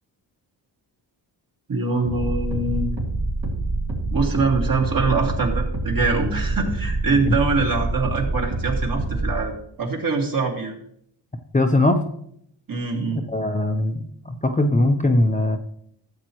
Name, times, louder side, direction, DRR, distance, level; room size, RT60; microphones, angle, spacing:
voice 1, 1.7-2.9 4.1-10.7 12.7-13.2, right 3 dB, 45° right, 1 dB, 2.2 m, -24 dB
sound 1, 2.0-9.4, right 2 dB, 70° right, 3.0 m, -26 dB
voice 2, 11.5-12.0 13.1-15.6, left 1 dB, 15° left, 4 dB, 0.8 m, -20 dB
13.0 x 7.4 x 3.1 m, 0.69 s
cardioid pair, 75°, 47 cm